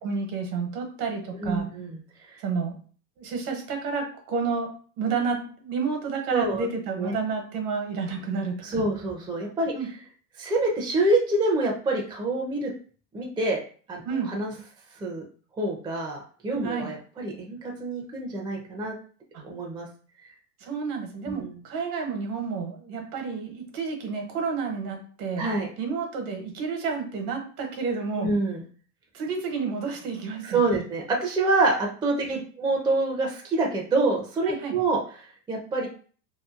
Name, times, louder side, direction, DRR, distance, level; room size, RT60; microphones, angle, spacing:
voice 1, 0.0-1.7 2.4-2.8 3.2-8.9 9.7-9.9 14.0-14.3 16.6-16.9 20.6-25.5 25.8-28.3 29.1-30.6 32.3-32.4 34.5-34.7, right 5 dB, 65° right, 3 dB, 1.1 m, -30 dB
voice 2, 1.4-2.0 6.3-6.7 7.0-7.1 8.6-9.7 10.4-12.7 13.1-13.6 13.9-14.0 14.3-14.5 15.0-15.2 15.6-18.9 19.4-19.9 21.2-21.6 25.4-25.7 28.2-28.6 30.4-35.9, right 2 dB, 10° right, 0 dB, 0.4 m, -26 dB
2.8 x 2.3 x 2.4 m, 0.42 s
supercardioid pair, 105°, 49 cm